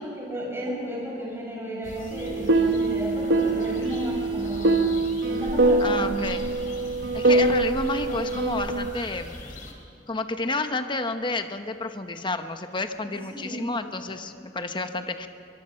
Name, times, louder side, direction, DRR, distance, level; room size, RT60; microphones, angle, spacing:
voice 1, 0.0-6.1 13.3-13.6, right 1 dB, 15° right, -4 dB, 6.0 m, -33 dB
sound 1, 1.8-9.7, left 1 dB, 50° left, 3.0 m, -40 dB
sound 2, 2.1-9.0, right 2 dB, 85° right, 1.1 m, -24 dB
voice 2, 5.8-6.4 6.8-9.4 10.1-15.3, left 3 dB, 25° left, 8 dB, 1.0 m, -30 dB
23.5 x 21.5 x 5.7 m, 2.5 s
head